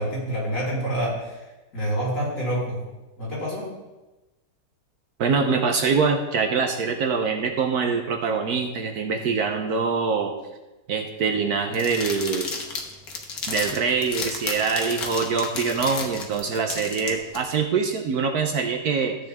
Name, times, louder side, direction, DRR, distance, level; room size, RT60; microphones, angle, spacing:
voice 1, 0.0-1.4 1.7-2.9 3.2-3.7, right 1 dB, 45° left, -6 dB, 4.5 m, -27 dB
voice 2, 5.2-10.3 10.9-12.5 13.5-19.2, right 5 dB, 65° right, 4 dB, 1.2 m, -24 dB
sound 1, 11.7-17.4, left 4 dB, 60° left, 1.6 m, -32 dB
13.5 x 7.7 x 3.5 m, 1.1 s
omnidirectional pair, 1.8 m